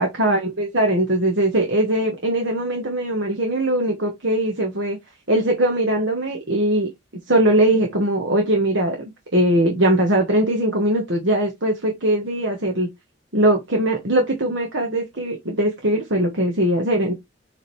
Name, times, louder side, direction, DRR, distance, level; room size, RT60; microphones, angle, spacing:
voice 1, 0.0-5.0 5.3-6.9 7.3-12.9 13.3-17.1, right 1 dB, 65° right, 1.6 m, -20 dB
7.3 x 3.9 x 3.3 m
head